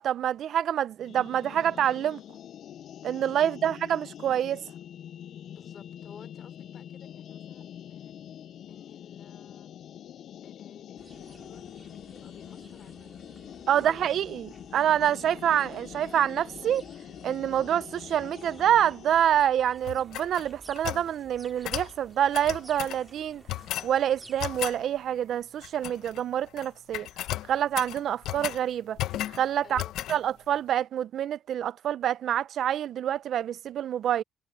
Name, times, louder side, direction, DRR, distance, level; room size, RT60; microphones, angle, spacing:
voice 1, 0.0-2.2 3.0-4.6 13.7-16.8 17.2-23.4 23.8-27.1 27.5-29.0 29.3-29.8 30.1-34.2, right 10 dB, 60° right, 0.4 m, -26 dB
sound 1, 1.0-19.3, left 10 dB, 60° left, 0.4 m, -45 dB
voice 2, 3.4-4.0 5.5-8.1 8.7-9.8 10.4-13.2 13.6-14.0 29.6-30.5, left 7 dB, 45° left, 3.1 m, -55 dB
sound 2, 11.0-24.7, right 2 dB, 15° right, 3.1 m, -54 dB
sound 3, 19.8-21.1 21.6-21.9 22.3-23.0 23.5-23.9 24.4-24.8 25.6-26.2 26.5-26.7 26.9-28.6 29.0-29.4 29.8-30.2, left 14 dB, 85° left, 0.8 m, -34 dB
cardioid pair, 130°, 0 cm